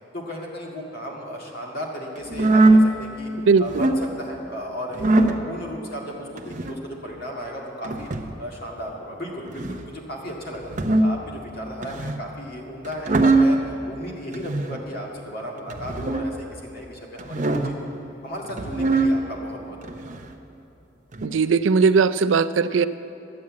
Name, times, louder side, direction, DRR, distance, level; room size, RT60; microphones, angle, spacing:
voice 1, 0.1-3.3 3.6-8.1 8.4-10.7 11.0-17.9 18.2-20.2, equal, 55° left, -2 dB, 2.0 m, -35 dB
sound 1, 2.3-2.9 3.6-4.0 4.9-5.4 6.4-6.8 7.8-8.3 9.5-9.9 10.6-11.2 11.8-12.3 12.8-13.6 14.3-14.8 15.7-16.3 17.2-17.8 18.5-19.1 19.8-20.3 21.1-21.3, right 2 dB, 40° right, 0.7 m, -21 dB
voice 2, 3.5-3.8 21.2-22.9, right 5 dB, 85° right, 14 dB, 0.4 m, -19 dB
12.0 x 8.7 x 8.4 m, 3.0 s
head